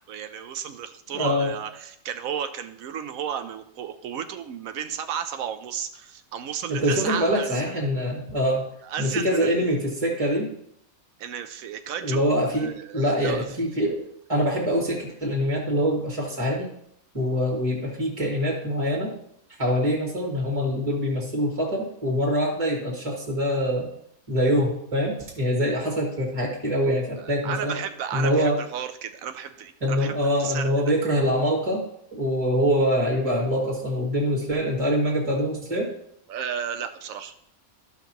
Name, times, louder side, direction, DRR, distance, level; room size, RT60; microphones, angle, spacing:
voice 1, 0.1-7.7 8.8-9.7 11.2-12.2 12.6-13.5 27.2-30.7 36.3-37.3, right 8 dB, 80° right, 9 dB, 1.0 m, -33 dB
voice 2, 1.1-1.5 6.7-8.6 9.0-10.5 12.0-14.0 14.3-16.7 17.1-19.1 19.6-23.9 24.3-27.7 28.1-28.6 29.8-31.8 32.1-35.9, equal, 25° right, -2 dB, 1.9 m, -24 dB
13.5 x 5.8 x 2.9 m, 0.70 s
omnidirectional pair, 1.5 m